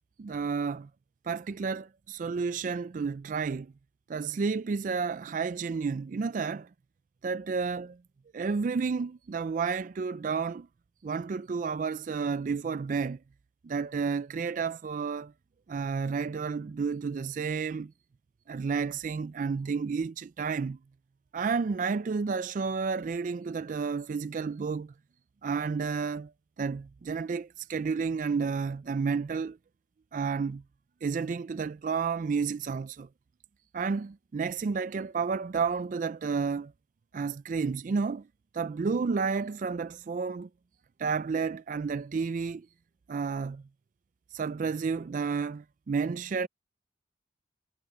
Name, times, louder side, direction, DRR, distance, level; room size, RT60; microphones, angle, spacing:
voice 1, 0.2-0.9 1.2-3.7 4.1-6.7 7.2-8.0 8.3-10.7 11.0-13.2 13.6-15.3 15.7-17.9 18.5-20.8 21.3-24.9 25.4-26.3 26.6-29.6 30.1-30.6 31.0-33.1 33.7-36.7 37.1-38.2 38.5-40.5 41.0-42.7 43.1-43.6 44.3-46.5, right 5 dB, 45° right, 0.3 m, -31 dB
head